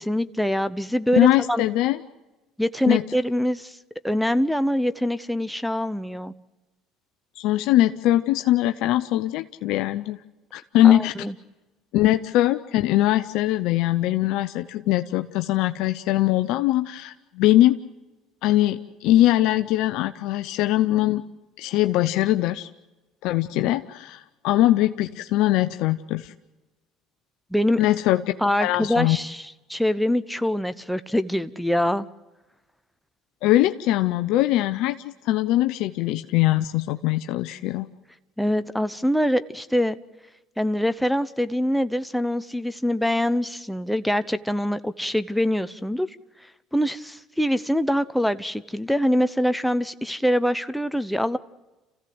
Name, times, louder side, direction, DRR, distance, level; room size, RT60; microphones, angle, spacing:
voice 1, 0.0-1.6 2.6-3.8 4.0-6.3 10.8-11.3 27.5-27.8 28.4-32.1 38.4-40.0 40.6-46.1 46.7-51.4, equal, ahead, 12 dB, 0.9 m, -24 dB
voice 2, 1.1-2.0 2.9-3.0 7.4-10.2 10.5-11.1 11.9-17.8 18.4-21.2 21.6-22.7 23.2-26.3 27.8-28.2 28.6-29.2 33.4-37.9, left 14 dB, 70° left, 9 dB, 0.7 m, -21 dB
28.5 x 15.5 x 7.9 m, 1.1 s
hypercardioid pair, 75°, 0 cm